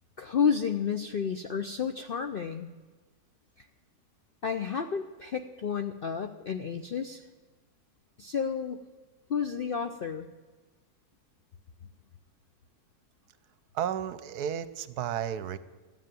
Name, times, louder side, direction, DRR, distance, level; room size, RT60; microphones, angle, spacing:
voice 1, 0.2-2.7 3.6-3.7 4.4-7.3 8.2-8.8 9.3-10.3, left 6 dB, 60° left, 7 dB, 0.5 m, -31 dB
voice 2, 13.7-15.6, right 9 dB, 75° right, 14 dB, 1.2 m, -32 dB
14.0 x 9.5 x 9.1 m, 1.3 s
omnidirectional pair, 1.7 m